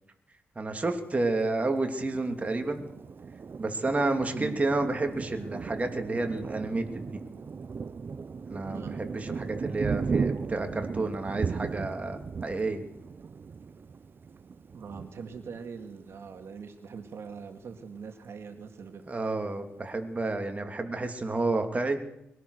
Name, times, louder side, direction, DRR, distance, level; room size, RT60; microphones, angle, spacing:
voice 1, 0.6-2.8 3.6-7.2 8.5-12.8 19.1-22.0, right 2 dB, 30° right, 5 dB, 2.8 m, -30 dB
Thunder, 2.1-16.4 16.9-17.1 17.4-18.0, right 5 dB, 50° right, 0.7 m, -37 dB
voice 2, 8.6-9.0 14.7-19.0, right 5 dB, 70° right, 6 dB, 2.3 m, -42 dB
22.5 x 17.5 x 6.6 m, 0.81 s
cardioid pair, 80°, 5 cm